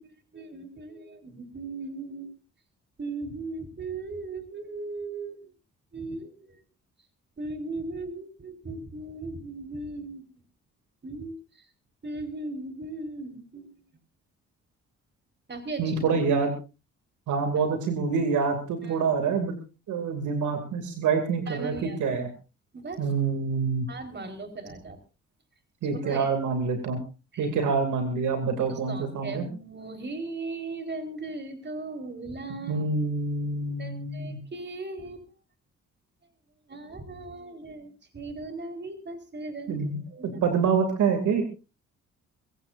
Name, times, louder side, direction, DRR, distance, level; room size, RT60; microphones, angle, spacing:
voice 1, 0.0-2.3 3.0-5.5 5.9-6.6 7.4-10.2 11.0-11.7 12.0-13.7 15.5-16.2 17.6-17.7 18.8-19.1 21.5-22.0 22.7-23.1 23.9-25.0 25.9-26.3 27.3-27.5 28.5-32.9 33.8-35.3 36.7-40.4, right 3 dB, 35° right, 7 dB, 4.4 m, -38 dB
voice 2, 15.8-16.5 17.3-19.5 19.9-22.3 23.0-23.9 25.8-27.0 27.4-29.4 32.7-34.4 39.7-40.0 40.2-41.4, right 5 dB, 80° right, 6 dB, 2.7 m, -26 dB
23.0 x 16.0 x 2.6 m, 0.31 s
supercardioid pair, 65°, 30 cm